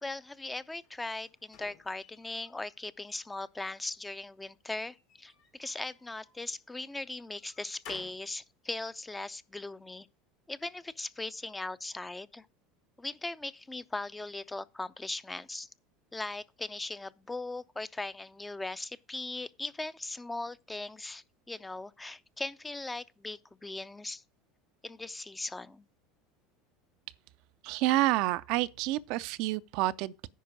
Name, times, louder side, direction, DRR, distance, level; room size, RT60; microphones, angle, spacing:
voice 1, 0.0-10.1 10.5-12.5 13.0-15.7 16.1-24.2 24.8-25.8, left 2 dB, 10° left, 0.5 m, -39 dB
sound 1, 0.8-2.8 3.2-4.0 4.9-6.4 7.0-8.3, left 7 dB, 60° left, 2.1 m, -55 dB
voice 2, 27.6-30.3, right 17 dB, 55° right, 0.4 m, -29 dB
10.0 x 4.4 x 6.3 m
figure-of-eight pair, 75°, 0 cm